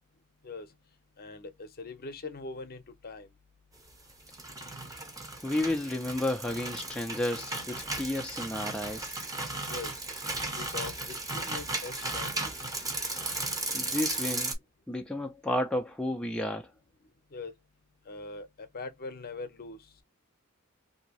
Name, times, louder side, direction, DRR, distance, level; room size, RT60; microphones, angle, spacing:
voice 1, 1.2-3.3 9.7-9.9 10.5-12.5 17.3-17.5 18.1-19.9, left 3 dB, 45° left, 0.7 m, -42 dB
sound 1, 4.1-14.6, right 2 dB, 15° right, 0.7 m, -35 dB
voice 2, 5.4-9.2 13.7-14.5 14.9-16.7, left 1 dB, 5° left, 0.3 m, -32 dB
2.8 x 2.6 x 2.8 m
head